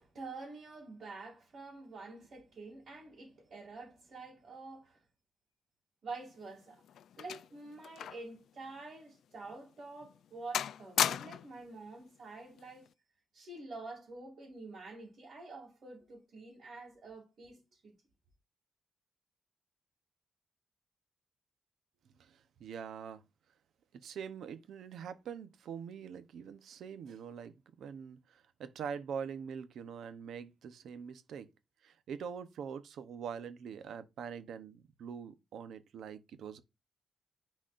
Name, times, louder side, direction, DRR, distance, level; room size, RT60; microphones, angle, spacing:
voice 1, 0.0-5.0 6.0-6.8 7.2-12.9 13.3-17.9, right 3 dB, 45° right, 2.5 m, -48 dB
Door Open Close, 6.2-8.4 8.6-8.8 9.4-9.6 10.0-10.3 10.5-11.6 12.6-12.9, left 10 dB, 80° left, 0.3 m, -36 dB
voice 2, 22.2-23.2 23.9-31.5 31.8-36.6, right 7 dB, 85° right, 0.8 m, -44 dB
10.0 x 4.1 x 2.5 m
wide cardioid pair, 175°, 0 cm